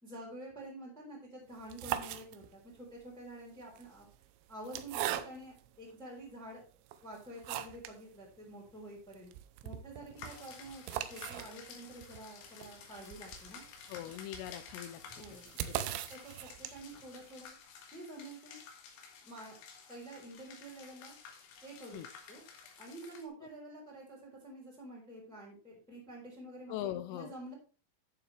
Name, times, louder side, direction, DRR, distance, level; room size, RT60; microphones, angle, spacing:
voice 1, 0.0-4.1 4.5-6.6 7.0-9.3 9.6-13.6 15.2-15.5 15.8-17.5 17.9-18.6 19.2-19.5 19.9-21.1 21.6-22.0 22.3-22.4 22.8-27.5, right 1 dB, ahead, -4 dB, 2.9 m, -49 dB
sound 1, 1.5-2.8 3.6-5.7 6.3-6.4 6.9-8.0 8.3-8.4 8.7-8.8 9.1-17.0, right 12 dB, 80° right, 2.6 m, -41 dB
sound 2, 10.2-23.3, left 6 dB, 70° left, 3.7 m, -52 dB
voice 2, 13.9-15.0 15.7-16.0 21.9-22.1 26.7-27.3, left 13 dB, 90° left, 10 dB, 3.3 m, -41 dB
12.0 x 7.2 x 3.3 m, 0.37 s
omnidirectional pair, 5.8 m